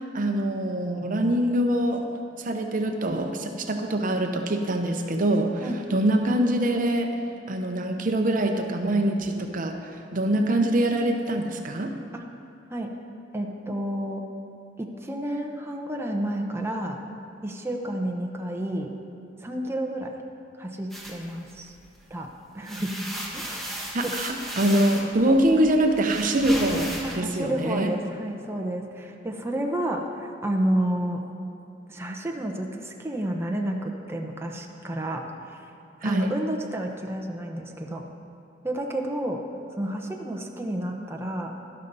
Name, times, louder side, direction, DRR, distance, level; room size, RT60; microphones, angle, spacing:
voice 1, 0.1-2.0 2.4-7.1 7.5-9.8 10.1-11.9 22.7-22.9 23.9-27.9 36.0-36.3, right 1 dB, 50° right, 4 dB, 0.8 m, -24 dB
voice 2, 13.3-14.2 14.8-17.0 17.4-18.9 19.4-20.1 20.6-21.8 22.1-22.3 22.5-23.1 23.3-24.1 25.3-25.4 27.0-31.2 31.9-35.7 36.0-38.0 38.6-39.4 39.8-41.6, right 1 dB, 15° right, 1 dB, 0.8 m, -30 dB
sound 1, 20.9-22.1 22.5-27.2, equal, ahead, 1.6 m, -36 dB
12.5 x 12.0 x 4.1 m, 2.6 s
head